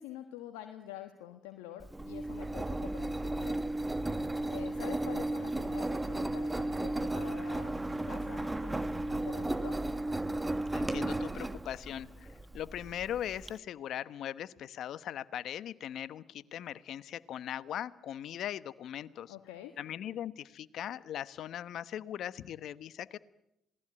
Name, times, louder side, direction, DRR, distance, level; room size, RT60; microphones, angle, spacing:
voice 1, 0.0-3.6 4.5-9.7 19.3-19.8, left 12 dB, 85° left, 5 dB, 1.5 m, -47 dB
Engine, 1.8-13.5, right 1 dB, 15° right, 1.5 m, -34 dB
voice 2, 10.7-19.3 19.8-23.2, left 10 dB, 70° left, 15 dB, 1.1 m, -40 dB
27.5 x 19.0 x 8.9 m, 0.82 s
hypercardioid pair, 55°, 0 cm